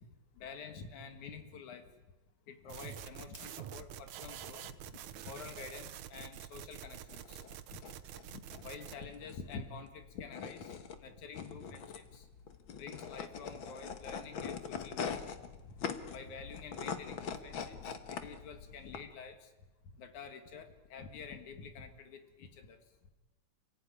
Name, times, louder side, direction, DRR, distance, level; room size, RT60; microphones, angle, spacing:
voice 1, 0.4-1.9 2.5-7.4 7.7-7.8 8.3-12.3 12.8-15.2 16.1-19.5 20.0-22.8, left 5 dB, 80° left, 7 dB, 3.1 m, -48 dB
sound 1, 2.7-9.0, right 11 dB, 80° right, 2.4 m, -47 dB
sound 2, 7.0-19.0, left 6 dB, 50° left, 1.8 m, -43 dB
28.5 x 16.5 x 9.7 m, 1.1 s
omnidirectional pair, 3.4 m